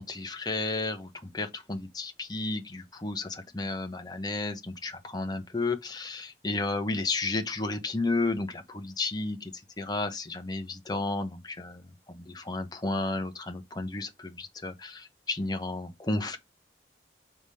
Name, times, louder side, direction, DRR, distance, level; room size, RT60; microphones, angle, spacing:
voice 1, 0.0-16.4, left 2 dB, 20° left, 0.9 m, -32 dB
4.9 x 3.7 x 5.5 m
head